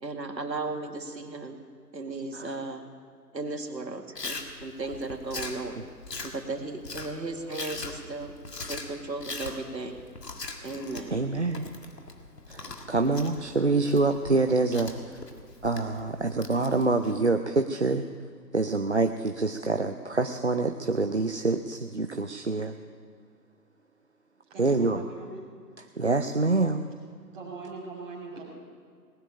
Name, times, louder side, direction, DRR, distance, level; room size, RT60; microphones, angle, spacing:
voice 1, 0.0-1.6 1.9-2.8 3.3-5.8 6.2-8.3 8.7-10.0 10.6-11.1, right 3 dB, 85° right, 4 dB, 2.1 m, -35 dB
Chewing mastication, 4.2-17.2, left 3 dB, 70° left, 2.0 m, -41 dB
voice 2, 11.1-11.7 12.5-15.2 15.6-18.0 18.5-22.8 24.6-25.0 26.0-26.9, right 3 dB, 45° right, 6 dB, 0.5 m, -26 dB
voice 3, 24.5-25.5 27.3-28.4, right 3 dB, 10° right, -9 dB, 2.6 m, -41 dB
19.0 x 7.3 x 9.9 m, 2.1 s
figure-of-eight pair, 165°, 50 cm